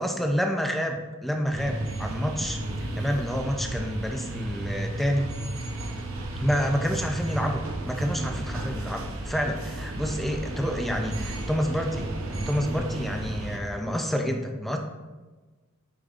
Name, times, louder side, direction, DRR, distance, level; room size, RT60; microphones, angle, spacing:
voice 1, 0.0-5.3 6.4-14.8, equal, ahead, 3 dB, 0.4 m, -28 dB
sound 1, 1.5-13.6, right 1 dB, 70° right, 0.8 m, -33 dB
8.7 x 5.1 x 2.4 m, 1.2 s
head